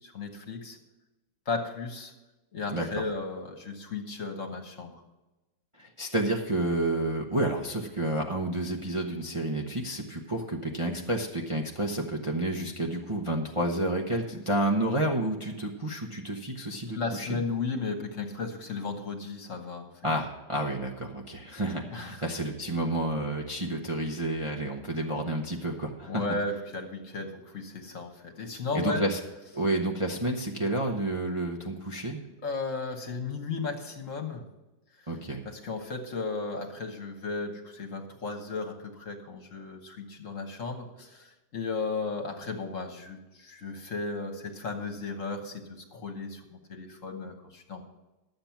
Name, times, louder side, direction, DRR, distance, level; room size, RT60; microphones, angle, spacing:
voice 1, 0.0-0.8 1.5-2.1 2.5-5.0 16.9-19.9 21.9-22.2 26.1-29.0 32.4-34.5 35.4-47.8, left 3 dB, 50° left, 4 dB, 1.6 m, -35 dB
voice 2, 2.7-3.0 5.8-17.4 20.0-26.2 28.7-29.2 29.5-32.2 35.1-35.4, right 1 dB, 25° right, 0 dB, 0.9 m, -30 dB
12.0 x 7.8 x 5.9 m, 1.0 s
omnidirectional pair, 1.8 m